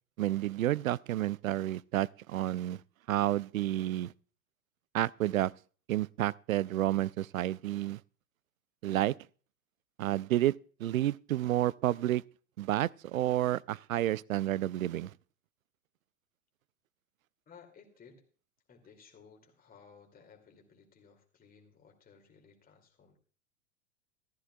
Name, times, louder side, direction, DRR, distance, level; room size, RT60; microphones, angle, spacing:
voice 1, 0.2-2.8 3.1-4.1 4.9-5.5 5.9-8.0 8.8-9.1 10.0-10.5 10.8-12.2 12.6-15.1, right 14 dB, 70° right, 0.5 m, -30 dB
voice 2, 17.5-18.2 18.7-23.2, left 6 dB, 20° left, 2.6 m, -58 dB
14.5 x 14.0 x 2.3 m
figure-of-eight pair, 95°, 42 cm